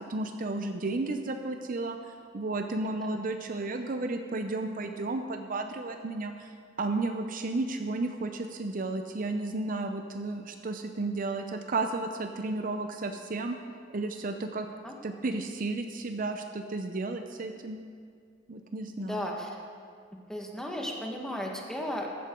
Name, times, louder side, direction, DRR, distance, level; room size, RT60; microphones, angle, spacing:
voice 1, 0.1-2.0 2.3-6.5 6.8-13.6 13.9-14.7 15.0-17.8 18.5-19.3, right 2 dB, 45° right, 6 dB, 0.6 m, -33 dB
voice 2, 19.0-19.6 20.3-22.1, equal, 5° left, 0 dB, 1.4 m, -35 dB
15.0 x 12.5 x 3.8 m, 2.2 s
head